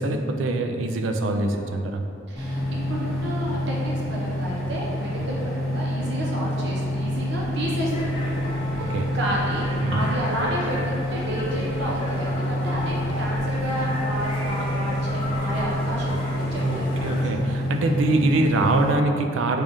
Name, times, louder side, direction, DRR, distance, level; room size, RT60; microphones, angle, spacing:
voice 1, 0.0-2.0 8.8-9.2 9.8-10.0 16.6-19.6, right 2 dB, 75° right, 5 dB, 0.3 m, -24 dB
voice 2, 2.3-2.6 2.9-17.3, equal, 60° right, -4 dB, 0.7 m, -31 dB
sound 1, 2.4-18.9, left 1 dB, ahead, 0.9 m, -27 dB
sound 2, 7.9-17.2, left 1 dB, 25° left, 0.6 m, -34 dB
4.8 x 2.4 x 2.6 m, 2.5 s
head